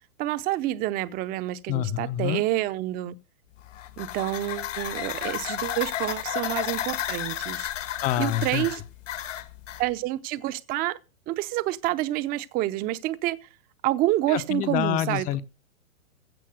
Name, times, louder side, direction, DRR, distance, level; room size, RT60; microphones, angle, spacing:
voice 1, 0.2-3.2 4.0-7.7 8.2-8.8 9.8-11.0 11.3-13.4 13.8-15.3, right 15 dB, 20° right, 0.7 m, -28 dB
voice 2, 1.7-2.4 8.0-8.7 14.3-15.4, left 12 dB, 20° left, 0.7 m, -27 dB
sound 1, 3.6-9.8, left 11 dB, 65° left, 1.6 m, -32 dB
15.5 x 6.0 x 7.9 m
hypercardioid pair, 125°, 41 cm